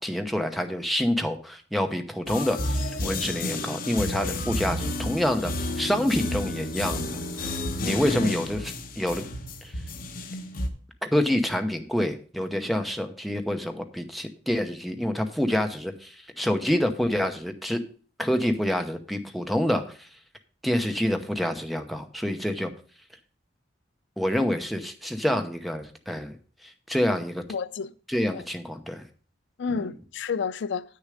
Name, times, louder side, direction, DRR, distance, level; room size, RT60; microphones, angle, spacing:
voice 1, 0.0-7.5 7.8-9.2 9.6-9.7 11.0-17.8 18.2-20.1 20.6-22.7 24.2-26.4 26.9-27.4 28.1-29.0 29.7-29.9, equal, ahead, 0.8 m, -27 dB
sound 1, 2.3-10.7, left 1 dB, 50° left, 1.0 m, -31 dB
voice 2, 27.5-27.9 28.3-28.4 29.6-30.8, left 5 dB, 70° left, 0.5 m, -30 dB
8.8 x 6.7 x 4.9 m
head